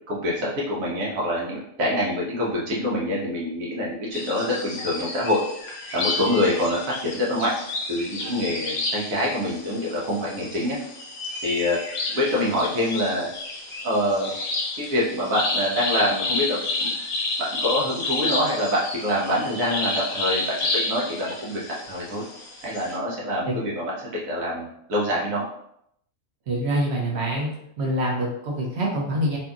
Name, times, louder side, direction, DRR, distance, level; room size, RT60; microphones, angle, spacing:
voice 1, 0.1-5.4 5.9-7.5 7.9-10.8 11.4-11.8 12.1-13.3 13.8-14.3 14.8-16.9 17.4-21.6 21.9-22.2 22.6-25.4, left 1 dB, 90° right, -5 dB, 1.2 m, -25 dB
sound 1, 4.1-23.0, left 2 dB, 55° left, 0.6 m, -30 dB
voice 2, 26.5-27.5 27.8-29.4, right 1 dB, 60° right, -2 dB, 0.9 m, -25 dB
2.7 x 2.6 x 2.3 m, 0.73 s
omnidirectional pair, 1.4 m